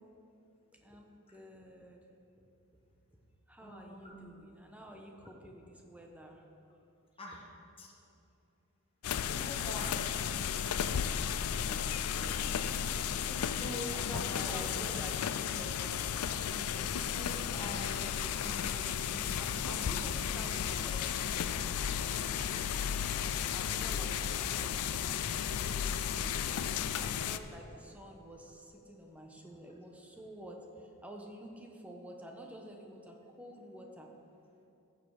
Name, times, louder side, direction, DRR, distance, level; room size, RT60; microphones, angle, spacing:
voice 1, 0.8-2.0 2.5-2.6 3.5-6.5 12.3-17.4 19.4-22.7 23.5-24.8 25.7-26.4 27.0-34.1, right 1 dB, 5° right, 1 dB, 1.1 m, -50 dB
voice 2, 3.6-4.2 7.2-7.4 7.8-7.9 9.2-10.0 10.3-10.5 11.6-12.5 13.2-14.8 16.8-18.0 18.3-19.1 19.8-19.9, left 1 dB, 25° left, -2 dB, 1.4 m, -45 dB
sound 1, 9.0-27.4, left 8 dB, 85° left, 0.4 m, -34 dB
15.0 x 6.8 x 4.9 m, 2.7 s
head